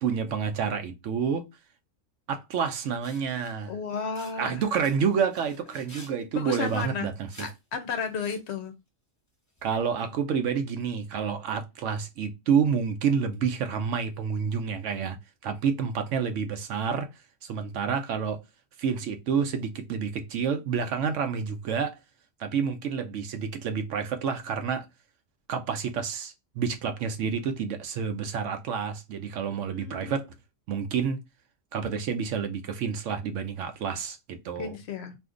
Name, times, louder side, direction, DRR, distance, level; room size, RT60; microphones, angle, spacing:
voice 1, 0.0-1.5 2.3-3.7 4.4-7.5 9.6-15.2 15.4-17.1 17.4-18.4 18.8-22.0 22.4-24.9 25.5-30.3 30.7-31.2 31.7-34.8, right 6 dB, 70° right, 0.9 m, -29 dB
sound 1, 3.0-3.6 4.1-6.1 6.4-7.6 8.0-8.5 9.6-9.7, equal, 15° left, 0.8 m, -50 dB
voice 2, 3.7-4.6 6.3-7.1 7.4-8.7 29.7-30.2 34.6-35.2, left 6 dB, 65° left, 0.8 m, -33 dB
2.7 x 2.5 x 3.6 m
omnidirectional pair, 1.4 m